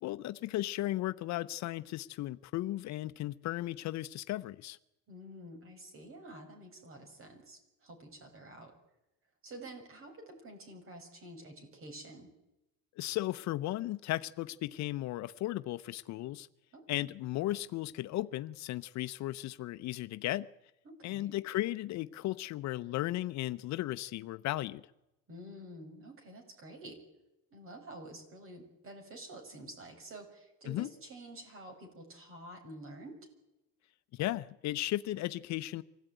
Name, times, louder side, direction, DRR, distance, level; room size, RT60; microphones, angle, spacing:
voice 1, 0.0-4.8 13.0-16.5 16.9-20.5 21.0-24.8 30.7-30.9 34.1-35.8, left 16 dB, 55° left, 13 dB, 0.7 m, -35 dB
voice 2, 5.1-8.7 9.4-12.3 16.7-16.8 20.8-21.4 25.3-27.0 27.5-33.2, right 1 dB, 40° right, 4 dB, 5.8 m, -49 dB
24.5 x 16.5 x 9.1 m, 0.93 s
cardioid pair, 140°, 33 cm